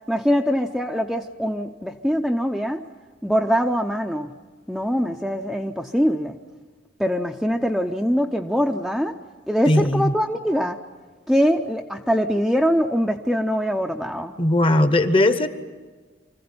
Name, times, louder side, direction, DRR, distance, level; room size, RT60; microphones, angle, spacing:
voice 1, 0.1-2.8 3.2-4.3 4.7-6.4 7.0-9.1 9.5-10.8 11.3-14.3, equal, ahead, 3 dB, 0.6 m, -23 dB
voice 2, 9.7-10.1 14.4-15.5, left 1 dB, 30° left, 11 dB, 1.0 m, -18 dB
25.5 x 15.0 x 9.6 m, 1.4 s
head